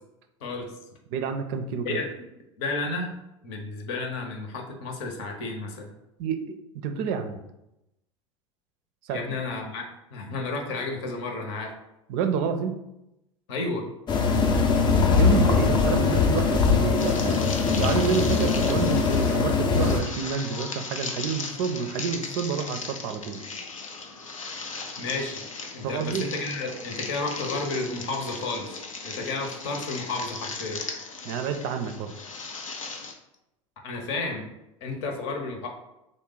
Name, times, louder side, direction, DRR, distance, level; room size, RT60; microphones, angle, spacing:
voice 1, 0.4-0.7 1.9-2.0 2.6-3.1 3.4-5.9 9.1-11.7 13.5-13.9 25.0-25.4 25.7-28.8 29.0-30.8 33.8-34.5 34.8-35.7, left 3 dB, 60° left, 3 dB, 0.8 m, -32 dB
voice 2, 1.1-2.0 6.2-7.4 9.0-9.2 12.1-12.7 15.2-23.4 25.8-26.3 31.2-32.1, right 6 dB, 55° right, 7 dB, 0.4 m, -29 dB
sound 1, 14.1-20.0, left 5 dB, 25° left, 0.5 m, -21 dB
sound 2, 17.0-33.1, left 4 dB, 85° left, 0.5 m, -37 dB
3.2 x 2.1 x 3.7 m, 0.88 s
figure-of-eight pair, 75°, 17 cm